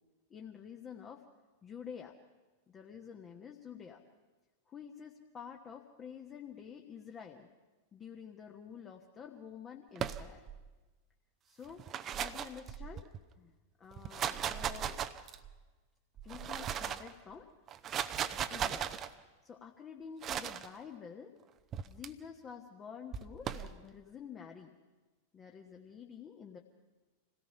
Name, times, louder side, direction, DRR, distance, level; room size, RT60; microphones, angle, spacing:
voice 1, 0.3-1.3 1.6-2.2 2.7-4.0 4.7-7.5 7.9-10.4 11.4-11.8 12.2-13.1 13.4-13.5 13.8-15.0 16.2-17.5 18.5-19.0 19.4-21.4 21.9-24.7 25.3-26.6, left 7 dB, 25° left, 2 dB, 1.4 m, -49 dB
sound 1, 9.9-10.6 11.7-13.2 13.9-15.5 16.2-17.1 17.7-19.1 20.2-20.7 21.7-22.1 23.1-23.7, right 9 dB, 30° right, 0.8 m, -37 dB
26.5 x 17.5 x 5.7 m, 1.2 s
figure-of-eight pair, 90°, 0 cm